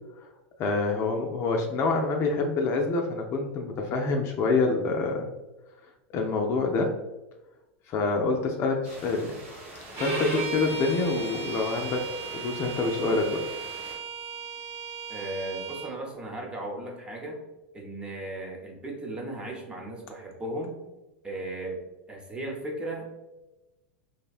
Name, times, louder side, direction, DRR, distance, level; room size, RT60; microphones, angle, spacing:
voice 1, 0.6-5.3 6.1-6.9 7.9-9.4 9.9-12.1 12.3-13.5, left 3 dB, 40° left, 2 dB, 0.3 m, -26 dB
sound 1, 8.8-14.0, right 1 dB, 85° right, 1.1 m, -45 dB
Bowed string instrument, 9.9-15.9, right 4 dB, 55° right, 0.9 m, -35 dB
voice 2, 15.1-17.4 17.7-20.8 21.2-21.8 22.1-23.2, right 1 dB, 15° right, -1 dB, 0.6 m, -36 dB
2.6 x 2.1 x 2.4 m, 1.0 s
hypercardioid pair, 110°, 7 cm